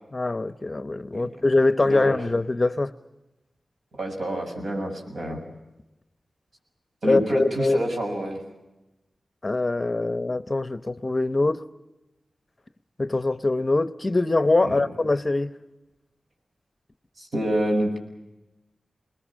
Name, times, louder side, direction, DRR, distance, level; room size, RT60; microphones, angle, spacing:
voice 1, 0.1-2.9 7.1-7.8 9.4-11.6 13.0-15.5, left 2 dB, 30° left, 0.8 m, -23 dB
voice 2, 1.8-2.2 3.9-5.4 7.0-8.4 14.6-14.8 17.2-18.0, right 1 dB, 70° right, 6.9 m, -27 dB
27.0 x 20.5 x 7.4 m
wide cardioid pair, 100°, 0 cm